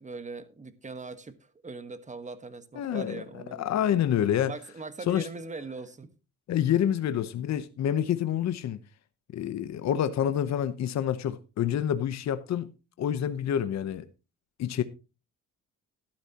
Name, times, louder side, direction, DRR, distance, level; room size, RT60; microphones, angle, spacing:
voice 1, 0.0-3.8 4.4-6.1, right 3 dB, 25° right, 1.3 m, -41 dB
voice 2, 2.8-3.2 3.6-4.5 5.1-5.3 6.5-8.8 9.3-12.7 13.0-14.1 14.6-14.8, left 10 dB, 60° left, 0.9 m, -27 dB
13.0 x 11.5 x 2.9 m
cardioid pair, 90°, 30 cm